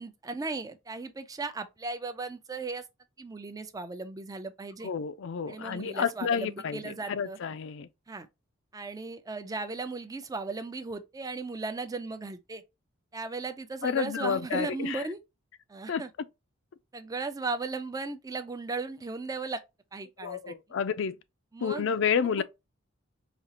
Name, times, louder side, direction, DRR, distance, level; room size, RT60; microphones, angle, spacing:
voice 1, 0.0-2.8 3.2-4.9 5.5-7.4 8.1-8.3 8.7-12.6 13.1-15.2 15.7-16.1 16.9-19.6 19.9-20.5 21.5-22.0, right 3 dB, 20° right, 0.4 m, -36 dB
voice 2, 4.8-7.9 13.8-15.0 15.9-16.0 20.2-21.2 21.6-22.4, left 7 dB, 65° left, 0.4 m, -30 dB
5.0 x 2.4 x 2.8 m
head